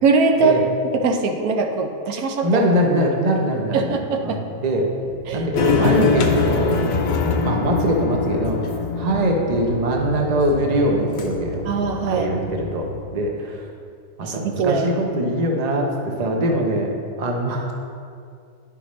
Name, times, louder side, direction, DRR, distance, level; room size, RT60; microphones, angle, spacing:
voice 1, 0.0-0.6 0.9-2.6 3.7-4.4 5.3-5.9 11.7-12.3 14.2-14.9, right 4 dB, 70° right, 3 dB, 1.0 m, -21 dB
voice 2, 2.4-4.9 5.3-8.6 9.0-11.6 12.1-13.6 14.2-16.9 17.2-17.7, right 1 dB, 40° right, 1 dB, 0.5 m, -22 dB
sound 1, 5.0-13.0, right 4 dB, 90° right, 1.7 m, -36 dB
sound 2, 5.6-13.0, left 4 dB, 85° left, 1.3 m, -24 dB
10.0 x 5.8 x 3.1 m, 2.4 s
omnidirectional pair, 1.8 m